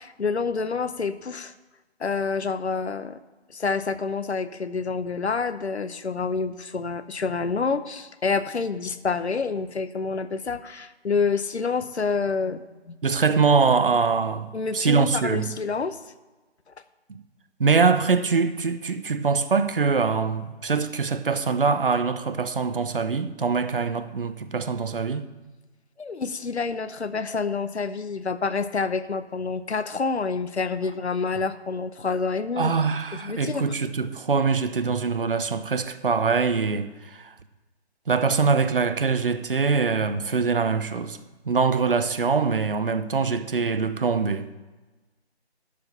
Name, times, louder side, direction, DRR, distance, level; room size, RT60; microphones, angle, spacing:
voice 1, 0.0-1.5 2.0-3.2 3.5-13.0 14.5-16.0 26.0-32.7 33.2-33.7, left 4 dB, 75° left, 0.8 m, -28 dB
voice 2, 13.0-15.5 17.1-17.2 17.6-25.3 32.6-37.3 38.1-41.2 41.5-44.5, right 5 dB, 55° right, 0.7 m, -23 dB
12.0 x 5.0 x 7.0 m
figure-of-eight pair, 160°, 34 cm